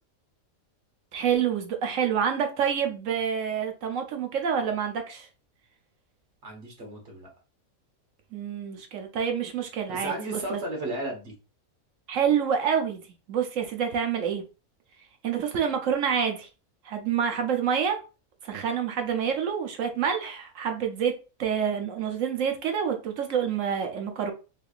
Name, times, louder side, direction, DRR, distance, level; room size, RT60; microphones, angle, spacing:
voice 1, 1.1-5.3 8.3-10.6 12.1-13.0 13.3-14.4 15.2-16.5 16.8-18.0 18.4-21.1 21.4-24.3, right 7 dB, 70° right, 1.0 m, -27 dB
voice 2, 6.4-7.3 9.9-11.4, right 1 dB, 50° right, 1.4 m, -34 dB
3.3 x 3.2 x 2.4 m
omnidirectional pair, 1.4 m